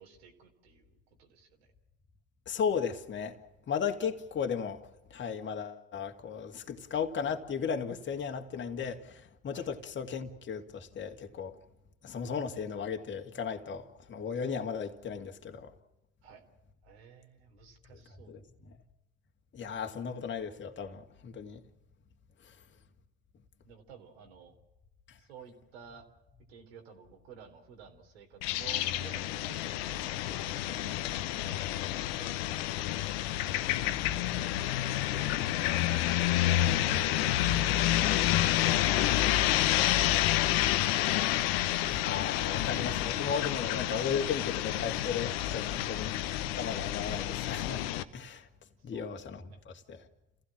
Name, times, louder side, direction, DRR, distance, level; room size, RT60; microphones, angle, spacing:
voice 1, 0.0-1.7 9.5-9.7 16.2-16.4 16.8-18.3 23.6-24.5 25.2-26.0 26.5-32.4 33.3-33.9 34.8-37.9 38.2-38.7 39.1-41.1 45.9-46.0 48.8-49.2 49.5-49.6, right 7 dB, 85° right, 3.8 m, -53 dB
voice 2, 2.5-3.4 3.7-4.8 5.1-11.6 12.0-15.7 18.3-18.4 19.5-21.6 22.4-22.6 25.1-25.2 41.9-47.9 48.1-48.5 48.8-50.0, left 6 dB, 40° left, 2.3 m, -35 dB
sound 1, 28.4-48.0, left 14 dB, 75° left, 1.2 m, -29 dB
29.0 x 16.0 x 7.6 m
hypercardioid pair, 75°, 30 cm